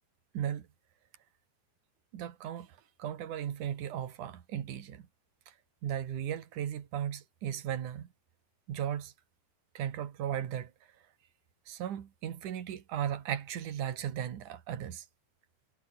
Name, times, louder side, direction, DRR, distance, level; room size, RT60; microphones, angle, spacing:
voice 1, 0.3-0.7 2.1-2.7 3.0-5.0 5.8-8.1 8.7-9.1 9.8-10.7 11.7-15.1, right 10 dB, 70° right, 3.4 m, -36 dB
omnidirectional pair, 3.7 m